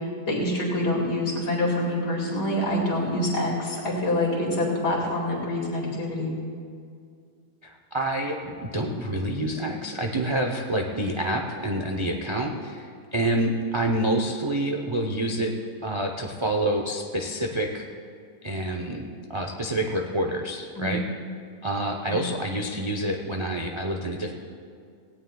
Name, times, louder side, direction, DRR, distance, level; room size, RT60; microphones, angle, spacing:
voice 1, 0.3-6.3 20.8-20.9 22.1-22.2, left 1 dB, 70° left, -3 dB, 2.9 m, -26 dB
voice 2, 7.6-15.5 15.8-17.9 18.4-21.0 21.6-24.3, right 1 dB, 40° right, 2 dB, 0.4 m, -27 dB
18.5 x 17.0 x 2.3 m, 2.2 s
omnidirectional pair, 1.9 m